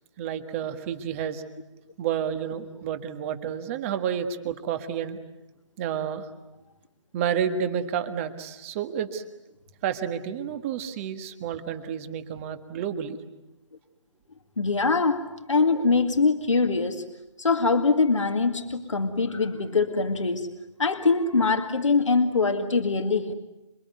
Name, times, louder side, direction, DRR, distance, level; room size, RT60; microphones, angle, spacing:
voice 1, 0.2-1.4 2.0-5.2 5.8-6.3 7.1-9.2 9.8-13.2, right 8 dB, 25° right, 9 dB, 1.6 m, -30 dB
voice 2, 14.6-17.0 17.4-20.5 20.8-23.3, left 4 dB, 75° left, 6 dB, 2.1 m, -23 dB
28.0 x 22.5 x 9.5 m, 0.96 s
figure-of-eight pair, 145°, 16 cm